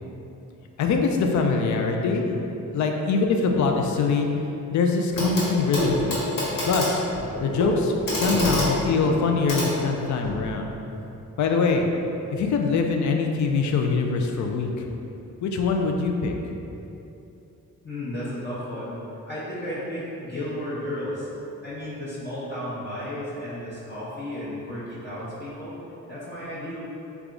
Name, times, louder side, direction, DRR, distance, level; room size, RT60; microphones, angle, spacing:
voice 1, 0.8-2.4 2.7-4.3 4.7-6.2 6.6-7.0 7.4-10.7 11.4-11.9 12.3-14.9 15.4-16.3, left 4 dB, 60° left, 2 dB, 0.4 m, -23 dB
Clock, 5.1-5.5 5.7-10.4 11.7-11.8, equal, 85° left, 1.4 m, -27 dB
voice 2, 17.8-21.3 21.6-25.8 26.1-26.8, left 1 dB, 35° left, -11 dB, 0.7 m, -33 dB
3.3 x 2.4 x 3.7 m, 2.9 s
cardioid pair, 105°, 32 cm